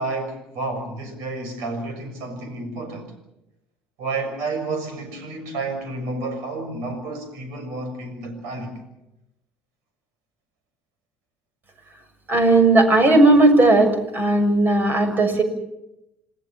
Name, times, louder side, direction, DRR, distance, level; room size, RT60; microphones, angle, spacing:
voice 1, 0.0-3.1 4.0-8.8, right 3 dB, 70° right, 6.5 m, -30 dB
voice 2, 12.3-15.4, right 2 dB, 35° right, 6.7 m, -16 dB
28.5 x 19.0 x 7.5 m
hypercardioid pair, 60°, 5 cm